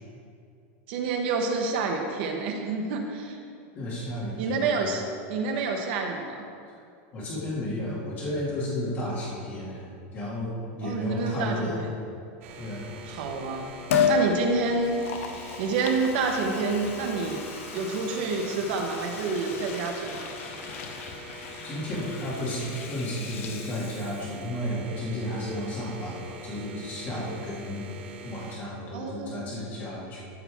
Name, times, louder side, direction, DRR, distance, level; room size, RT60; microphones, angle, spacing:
voice 1, 0.9-3.4 4.4-6.4 10.8-11.9 13.1-13.7 14.1-15.0 15.6-17.4 17.7-20.3 28.9-29.4, right 4 dB, 50° right, 2 dB, 1.1 m, -28 dB
voice 2, 3.7-4.8 7.1-9.9 10.1-11.8 12.6-12.8 21.6-27.9 28.2-30.2, left 1 dB, 25° left, -7 dB, 2.2 m, -33 dB
sound 1, 12.4-28.6, right 2 dB, 80° right, 1.5 m, -44 dB
Liquid, 13.9-14.2 14.8-24.5 24.8-24.9, left 7 dB, 85° left, 0.8 m, -33 dB
13.5 x 5.9 x 3.6 m, 2.4 s
supercardioid pair, 175°, 7 cm